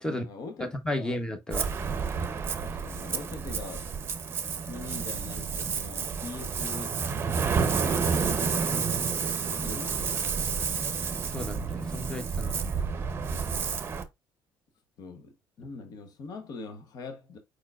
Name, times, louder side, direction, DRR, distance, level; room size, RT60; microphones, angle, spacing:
voice 1, 0.0-0.7 1.0-1.2 2.6-3.9 4.7-7.0 7.9-10.2 15.0-17.4, left 4 dB, 55° left, 0.9 m, -42 dB
voice 2, 0.6-1.7 11.3-12.7, left 1 dB, 10° left, 0.9 m, -33 dB
Ocean, 1.5-14.0, right 5 dB, 30° right, 0.7 m, -30 dB
4.6 x 4.4 x 2.4 m
cardioid pair, 115°, 8 cm